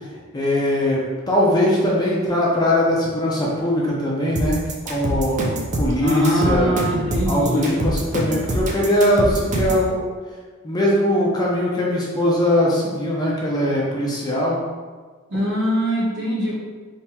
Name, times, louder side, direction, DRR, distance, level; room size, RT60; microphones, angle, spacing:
voice 1, 0.3-4.6 4.8-6.7 7.3-10.0 10.6-14.6, left 1 dB, 20° left, -4 dB, 0.5 m, -20 dB
sound 1, 4.4-9.9, right 1 dB, 35° right, 0.5 m, -24 dB
voice 2, 5.9-7.9 15.3-16.5, equal, 55° right, -7 dB, 1.3 m, -22 dB
3.4 x 2.8 x 2.8 m, 1.5 s
head